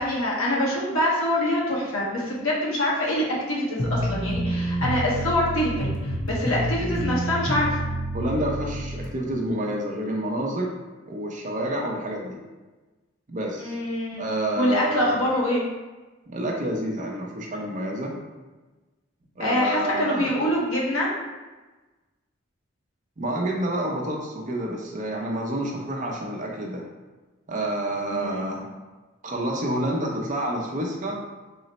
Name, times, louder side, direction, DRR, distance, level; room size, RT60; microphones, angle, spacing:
voice 1, 0.0-7.8 13.6-14.3 14.5-15.6 19.4-21.1 28.1-28.5, left 1 dB, 90° left, -5 dB, 1.1 m, -25 dB
sound 1, 3.8-9.1, right 1 dB, 40° left, 0.6 m, -28 dB
voice 2, 8.1-10.7 11.1-12.4 13.3-13.8 14.2-15.2 16.3-18.1 19.4-20.3 23.2-26.8 27.5-28.7 29.2-31.2, right 1 dB, 40° right, 0 dB, 0.5 m, -28 dB
3.8 x 2.1 x 4.0 m, 1.2 s
head